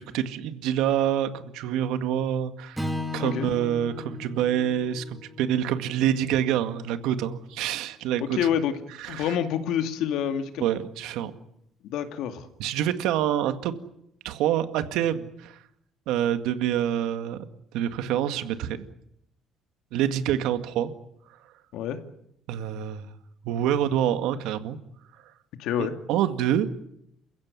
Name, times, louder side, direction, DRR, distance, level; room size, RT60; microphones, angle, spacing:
voice 1, 0.1-2.8 3.1-8.4 9.0-9.4 10.6-11.3 12.6-13.7 14.2-15.6 16.1-17.4 17.7-18.9 19.9-20.9 22.5-23.1 23.4-24.8 25.8-26.7, right 10 dB, 80° right, 9 dB, 2.0 m, -26 dB
Strum, 2.8-7.1, left 2 dB, 5° right, 2.2 m, -37 dB
voice 2, 3.2-3.5 8.2-8.8 9.1-10.7 11.8-12.5 21.7-22.0 25.6-26.0, left 9 dB, 70° left, 7 dB, 2.5 m, -27 dB
28.5 x 16.0 x 9.6 m, 0.79 s
cardioid pair, 150°, 0 cm